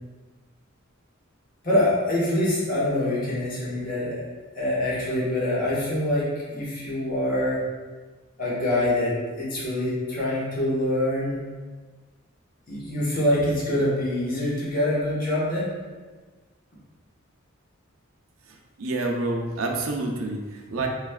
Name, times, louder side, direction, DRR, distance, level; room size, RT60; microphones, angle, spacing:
voice 1, 1.6-4.3 4.5-7.6 8.4-11.4 12.7-15.7, left 1 dB, 45° left, -8 dB, 1.1 m, -25 dB
voice 2, 18.8-20.9, right 2 dB, 80° right, 1 dB, 0.5 m, -28 dB
5.0 x 3.2 x 2.3 m, 1.3 s
head